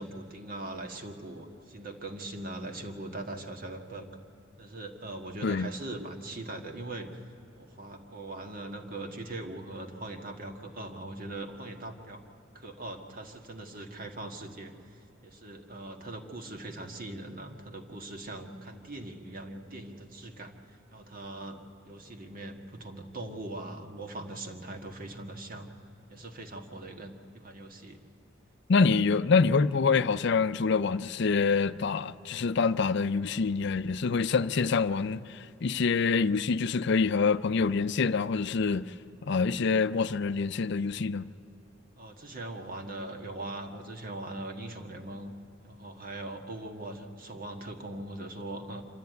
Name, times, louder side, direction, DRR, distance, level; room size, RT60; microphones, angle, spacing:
voice 1, 0.0-4.1 4.6-7.2 7.5-12.2 12.5-25.7 26.1-28.0 42.0-45.3 45.6-48.8, right 2 dB, 45° right, 1.8 m, -41 dB
voice 2, 28.7-38.9 39.3-41.3, left 4 dB, 60° left, 0.5 m, -26 dB
26.0 x 13.0 x 9.3 m
head